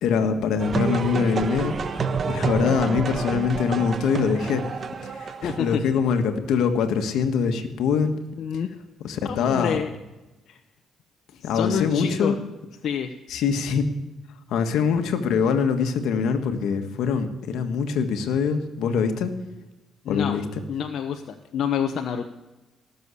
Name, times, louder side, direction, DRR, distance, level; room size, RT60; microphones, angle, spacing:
voice 1, 0.0-1.8 2.3-4.6 5.0-8.1 9.0-9.8 11.4-12.3 13.3-13.9 14.5-19.4 20.1-20.4, left 6 dB, 85° left, 7 dB, 1.5 m, -23 dB
sound 1, 0.6-5.7, right 5 dB, 45° right, 1.2 m, -28 dB
voice 2, 5.4-5.8 8.4-8.7 9.2-9.9 10.5-10.6 11.4-12.3 12.8-13.1 20.0-20.4 20.7-22.3, left 8 dB, 65° left, 5 dB, 0.9 m, -28 dB
18.0 x 7.1 x 8.4 m, 1.0 s
cardioid pair, 90°, 0 cm